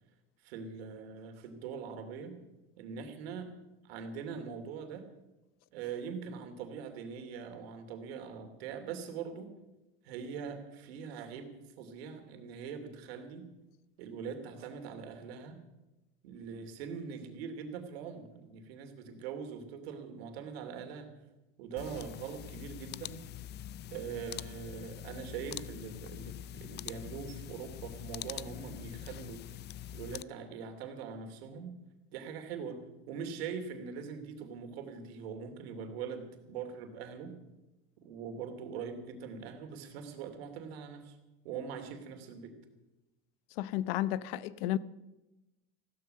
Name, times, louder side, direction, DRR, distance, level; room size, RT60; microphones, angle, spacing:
voice 1, 0.4-2.3 2.8-3.5 3.8-5.0 5.7-9.5 10.0-11.5 11.8-13.4 14.0-15.6 16.2-21.1 21.6-23.2 23.9-29.4 29.9-31.7 32.1-37.3 38.0-41.2 41.4-42.5, right 6 dB, 85° right, 2.8 m, -42 dB
sound 1, 21.8-30.2, left 12 dB, 35° left, 0.4 m, -44 dB
voice 2, 43.6-44.8, left 14 dB, 75° left, 0.8 m, -32 dB
15.5 x 12.5 x 6.7 m
supercardioid pair, 105°, 30 cm